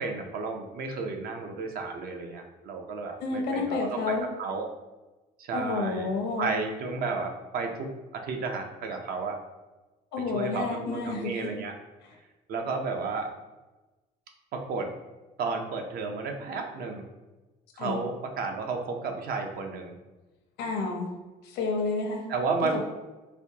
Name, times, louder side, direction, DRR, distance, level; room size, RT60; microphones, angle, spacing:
voice 1, 0.0-4.7 5.4-6.1 6.4-9.4 10.3-11.7 12.5-13.3 14.5-14.9 15.4-17.1 17.8-19.9 22.3-22.8, right 4 dB, 65° right, 3 dB, 0.6 m, -32 dB
voice 2, 3.2-4.3 5.5-6.5 10.1-11.5 17.8-18.0 20.6-21.1 21.4-22.3, left 3 dB, 85° left, 1 dB, 0.8 m, -30 dB
4.2 x 2.2 x 2.8 m, 1.1 s
cardioid pair, 110°, 17 cm